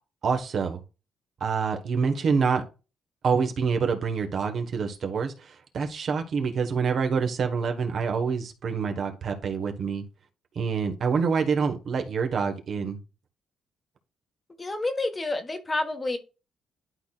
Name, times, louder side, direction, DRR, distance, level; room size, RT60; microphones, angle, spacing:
voice 1, 0.2-0.8 1.4-2.6 3.2-10.0 10.5-13.0, right 5 dB, 55° right, 1.5 m, -26 dB
voice 2, 14.6-16.2, left 2 dB, 25° left, 1.4 m, -29 dB
11.5 x 4.1 x 2.5 m
cardioid pair, 90°, 0 cm